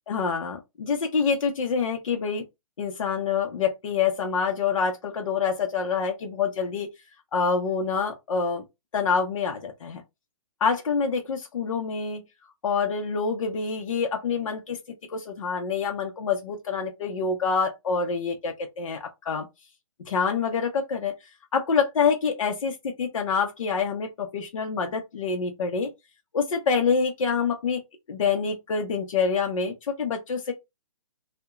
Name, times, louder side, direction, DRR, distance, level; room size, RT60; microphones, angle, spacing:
voice 1, 0.1-2.4 2.8-6.9 7.3-8.6 8.9-10.0 10.6-12.2 12.6-14.8 15.1-19.5 20.1-21.1 21.5-25.9 26.3-27.8 28.1-30.5, left 5 dB, 65° left, 0.6 m, -26 dB
2.8 x 2.1 x 2.3 m
hypercardioid pair, 170°, 18 cm